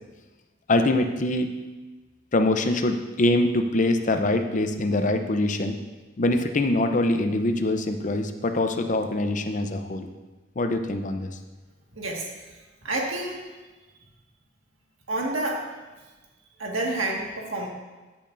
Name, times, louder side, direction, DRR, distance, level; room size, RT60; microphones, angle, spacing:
voice 1, 0.7-1.5 2.3-5.8 6.2-10.1 10.6-11.3, left 2 dB, 40° left, 7 dB, 0.6 m, -24 dB
voice 2, 11.9-12.3 12.8-13.4 15.1-15.6 16.6-17.7, right 2 dB, 85° right, -1 dB, 1.8 m, -28 dB
14.0 x 8.7 x 2.6 m, 1.2 s
head